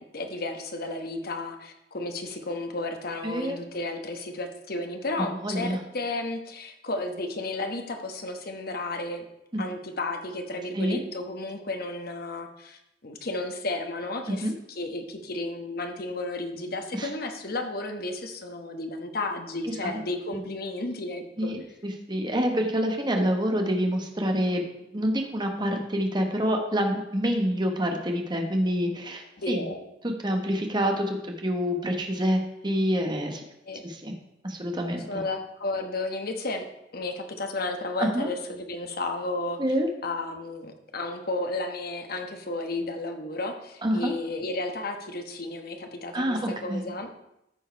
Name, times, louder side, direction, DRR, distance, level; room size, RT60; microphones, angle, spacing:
voice 1, 0.1-9.2 9.6-21.5 29.4-29.8 33.6-33.8 35.1-36.6 36.9-39.6 40.0-47.1, left 2 dB, 55° left, 5 dB, 1.2 m, -33 dB
voice 2, 3.2-3.6 5.2-5.8 9.5-9.6 10.7-11.0 14.3-14.5 16.9-17.1 19.6-20.0 20.3-20.4 21.4-24.6 24.9-29.6 30.0-33.4 33.8-34.1 34.4-35.0 38.0-38.3 39.6-39.9 43.8-44.1 46.1-46.8, equal, 25° right, 3 dB, 1.2 m, -27 dB
14.0 x 4.7 x 4.6 m, 0.85 s
head